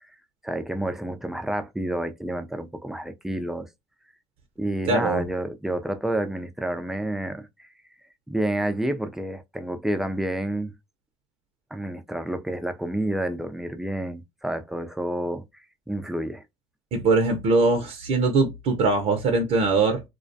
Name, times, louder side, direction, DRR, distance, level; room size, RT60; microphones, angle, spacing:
voice 1, 0.4-3.7 4.6-7.7 8.3-10.7 11.7-15.4 15.9-16.4, right 1 dB, 5° right, 0.4 m, -29 dB
voice 2, 4.9-5.2 16.9-20.0, right 3 dB, 65° right, 0.6 m, -21 dB
2.3 x 2.2 x 2.5 m
supercardioid pair, 80°, 12 cm